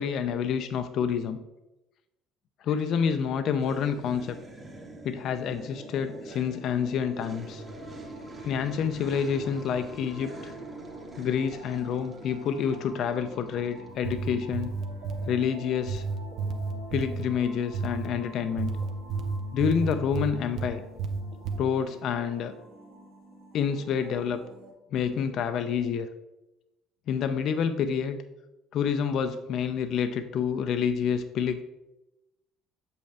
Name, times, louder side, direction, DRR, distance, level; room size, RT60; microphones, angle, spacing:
voice 1, 0.0-1.4 2.6-4.4 5.0-7.6 8.4-10.5 11.2-14.7 15.3-16.0 16.9-18.7 19.5-20.8 21.6-22.5 23.5-24.4 24.9-26.1 27.1-28.2 28.7-31.6, left 7 dB, 60° left, 9 dB, 0.5 m, -28 dB
sound 1, 3.6-13.9, right 2 dB, 30° right, 1.3 m, -45 dB
sound 2, 5.5-24.7, equal, 85° right, 1.5 m, -48 dB
sound 3, 13.9-15.3 15.9-17.3 17.7-18.1 18.6-20.7 21.0-21.6, right 4 dB, 65° right, 0.7 m, -31 dB
7.0 x 5.4 x 3.4 m, 0.95 s
supercardioid pair, 80°, 0 cm